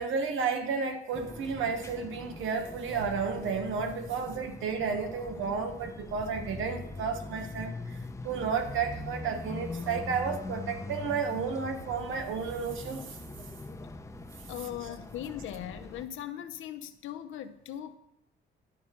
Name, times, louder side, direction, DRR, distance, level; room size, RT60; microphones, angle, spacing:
voice 1, 0.0-13.2, right 5 dB, 80° right, 6 dB, 1.1 m, -32 dB
sound 1, 1.1-16.0, left 3 dB, 15° left, 0.7 m, -42 dB
voice 2, 14.5-18.0, left 11 dB, 80° left, 8 dB, 0.7 m, -39 dB
11.0 x 5.0 x 4.4 m, 0.77 s
cardioid pair, 90°, 20 cm